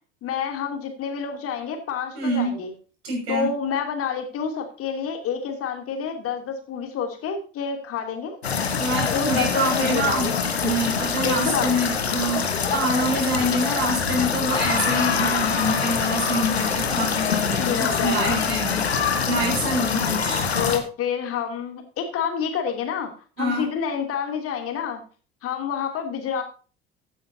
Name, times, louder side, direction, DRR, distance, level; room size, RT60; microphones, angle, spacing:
voice 1, 0.2-2.7 3.3-8.4 9.1-10.4 11.2-11.8 17.6-18.4 20.6-23.1 23.4-25.0 25.4-26.4, left 7 dB, 45° left, 5 dB, 2.9 m, -28 dB
voice 2, 2.1-2.6 3.0-3.5 8.5-10.3 10.6-18.8 19.3-20.5 23.4-23.7, right 1 dB, 70° right, 0 dB, 6.0 m, -26 dB
sound 1, 8.4-20.8, left 6 dB, 80° left, 1.5 m, -24 dB
15.5 x 9.3 x 2.8 m, 0.37 s
figure-of-eight pair, 65°, 31 cm